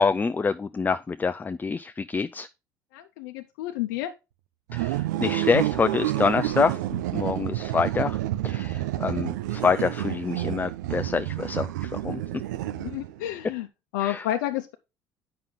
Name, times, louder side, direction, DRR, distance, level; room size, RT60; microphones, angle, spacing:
voice 1, 0.0-2.5 4.7-6.8 7.1-8.2 8.4-12.2 14.0-14.2, left 5 dB, 20° left, 0.4 m, -26 dB
voice 2, 2.9-4.1 12.6-13.7 13.9-14.7, left 13 dB, 80° left, 0.6 m, -30 dB
sound 1, 4.7-13.3, right 15 dB, 90° right, 0.4 m, -29 dB
7.6 x 5.7 x 3.8 m
hypercardioid pair, 70°, 9 cm